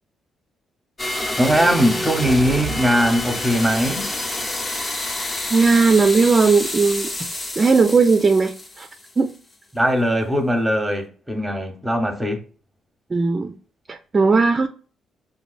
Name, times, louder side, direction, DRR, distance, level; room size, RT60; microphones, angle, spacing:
sound 1, 1.0-9.3, left 1 dB, 25° left, 0.7 m, -28 dB
voice 1, 1.4-4.1 9.7-12.4, equal, 5° right, 0.8 m, -20 dB
voice 2, 5.5-7.1 7.6-8.9 9.2-9.3 13.1-13.5 13.9-14.7, right 4 dB, 30° right, 0.4 m, -17 dB
5.1 x 2.5 x 2.4 m
cardioid pair, 90°, 0 cm